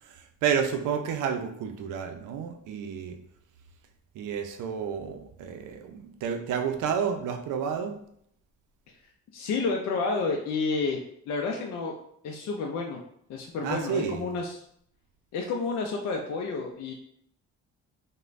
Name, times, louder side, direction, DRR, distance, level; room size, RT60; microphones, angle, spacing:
voice 1, 0.0-3.2 4.1-8.0 13.6-14.3, right 7 dB, 80° right, 5 dB, 0.5 m, -30 dB
voice 2, 9.3-11.0 11.3-12.0 12.2-13.0 13.3-14.6 15.3-16.9, left 4 dB, 60° left, 1 dB, 0.4 m, -30 dB
3.1 x 2.1 x 2.4 m, 0.69 s
cardioid pair, 90°, 30 cm